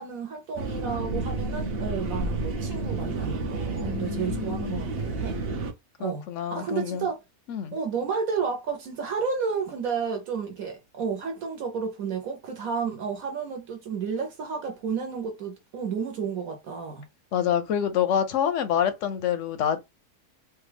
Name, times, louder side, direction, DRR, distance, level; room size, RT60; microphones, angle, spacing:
voice 1, 0.0-5.4 6.0-7.2 7.7-17.1, right 5 dB, 70° right, 1.2 m, -31 dB
sound 1, 0.6-5.7, right 3 dB, 50° right, 0.8 m, -30 dB
voice 2, 3.8-4.9 6.0-7.1 7.5-7.8 17.3-19.8, left 9 dB, 65° left, 0.8 m, -27 dB
3.3 x 2.2 x 3.3 m
omnidirectional pair, 1.6 m